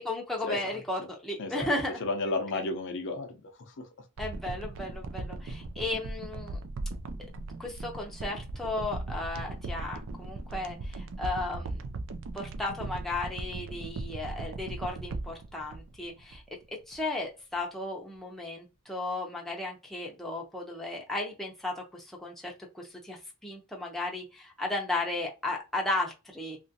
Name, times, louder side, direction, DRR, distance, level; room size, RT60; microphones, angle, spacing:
voice 1, 0.0-2.0 4.2-6.6 7.6-11.8 12.3-16.4 16.7-26.6, left 2 dB, ahead, 0.6 m, -35 dB
voice 2, 1.4-1.7 2.0-3.9, left 2 dB, 55° left, 0.5 m, -33 dB
sound 1, 4.2-16.6 16.9-17.0, right 2 dB, 60° right, 0.4 m, -38 dB
2.9 x 2.5 x 2.7 m
head